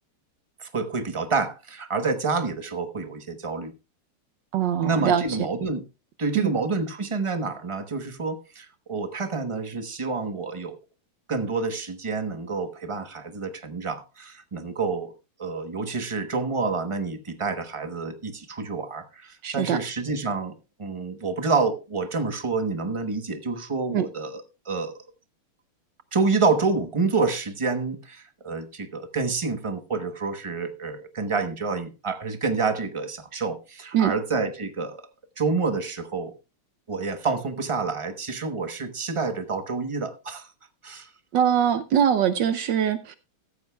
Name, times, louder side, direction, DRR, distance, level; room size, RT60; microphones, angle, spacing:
voice 1, 0.6-3.7 4.8-5.8 6.2-10.8 11.3-15.1 15.4-25.0 26.1-35.0 35.4-36.3 36.9-40.5 40.8-41.1, right 4 dB, 45° right, 0.4 m, -28 dB
voice 2, 4.5-5.4 6.3-6.5 19.4-19.8 23.9-24.1 33.9-34.1 41.3-43.2, right 9 dB, 70° right, 1.2 m, -22 dB
14.5 x 13.5 x 2.3 m
omnidirectional pair, 2.4 m